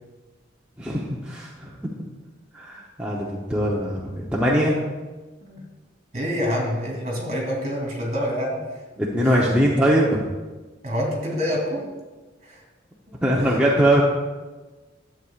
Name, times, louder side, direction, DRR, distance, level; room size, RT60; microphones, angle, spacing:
voice 1, 0.8-2.1 2.5-4.8 9.0-10.2 13.2-14.0, equal, 5° right, -5 dB, 0.8 m, -21 dB
voice 2, 6.1-8.8 9.2-9.6 10.8-11.9 12.4-12.6 13.1-13.2 13.4-13.5, equal, 40° right, -1 dB, 2.9 m, -27 dB
12.0 x 8.1 x 2.4 m, 1.2 s
head